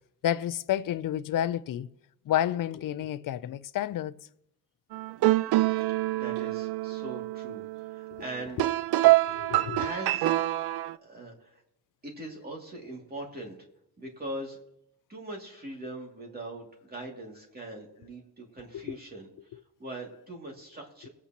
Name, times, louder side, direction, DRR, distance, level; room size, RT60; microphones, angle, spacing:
voice 1, 0.2-1.9 2.3-4.1 8.1-8.2 8.6-8.7 9.0-9.9 18.7-19.0, left 11 dB, 55° left, 0.5 m, -30 dB
sound 1, 4.9-11.0, right 17 dB, 80° right, 0.5 m, -26 dB
voice 2, 6.1-8.7 9.8-10.3 11.0-11.6 12.0-13.6 14.0-14.6 15.1-19.3 19.8-21.1, right 1 dB, 25° right, 2.5 m, -41 dB
22.0 x 8.5 x 2.9 m
wide cardioid pair, 160°, 39 cm